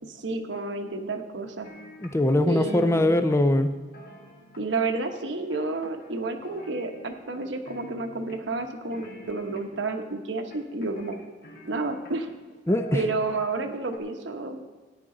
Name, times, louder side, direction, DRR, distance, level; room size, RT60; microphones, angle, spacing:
voice 1, 0.0-1.7 2.4-3.1 4.6-11.2 11.7-12.3 12.9-14.7, right 3 dB, 80° right, 5 dB, 1.0 m, -30 dB
sound 1, 1.6-2.4 2.7-4.9 5.5-6.2 6.4-7.4 7.6-8.6 8.9-9.9 10.5-12.3 12.7-13.6 13.9-14.0, left 1 dB, 55° left, 1.4 m, -46 dB
voice 2, 2.0-3.7 12.7-13.0, left 1 dB, 15° left, 9 dB, 0.5 m, -22 dB
14.0 x 9.8 x 3.9 m, 1.4 s
head